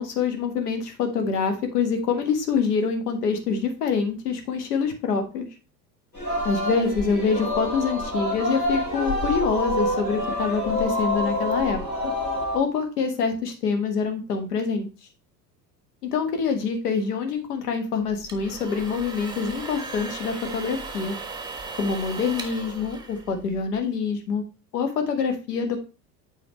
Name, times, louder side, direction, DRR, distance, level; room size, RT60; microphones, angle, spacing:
voice 1, 0.0-5.4 6.4-12.1 12.5-14.9 16.0-21.2 21.8-24.4 24.7-25.8, left 5 dB, 70° left, 5 dB, 1.5 m, -26 dB
Singing, 6.1-12.6, left 1 dB, 90° left, 3.3 m, -27 dB
sound 1, 18.1-23.8, right 3 dB, 10° right, 1.3 m, -37 dB
7.9 x 4.8 x 3.1 m, 0.31 s
figure-of-eight pair, 75°, 48 cm